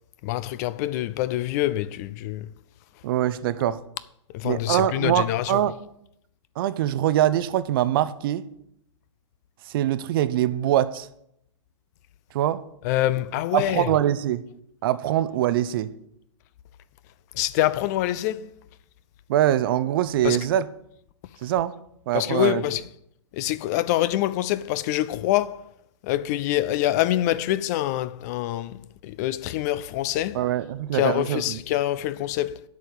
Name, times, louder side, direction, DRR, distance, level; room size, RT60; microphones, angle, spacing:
voice 1, 0.2-2.5 4.3-5.6 12.8-13.9 17.4-18.5 20.2-20.4 22.1-22.8 23.3-25.6 26.0-30.4 30.9-32.6, left 14 dB, 35° left, 0.4 m, -25 dB
voice 2, 3.0-3.8 4.4-5.7 6.6-8.5 9.7-11.1 12.3-12.6 13.5-14.4 14.8-15.9 19.3-20.7 21.4-21.7 22.1-22.6 30.3-31.6, right 12 dB, 45° right, 0.6 m, -23 dB
8.2 x 5.3 x 7.8 m
hypercardioid pair, 120°, 16 cm